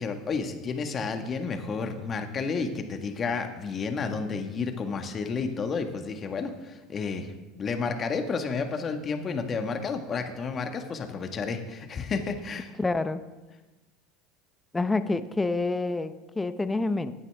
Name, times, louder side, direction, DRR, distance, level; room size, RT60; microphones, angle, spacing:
voice 1, 0.0-7.3 7.6-12.7, left 5 dB, 35° left, 6 dB, 1.5 m, -31 dB
voice 2, 12.8-13.2 14.7-17.1, left 3 dB, 15° left, 12 dB, 0.8 m, -27 dB
15.5 x 9.2 x 3.5 m, 1.1 s
hypercardioid pair, 80°, 0 cm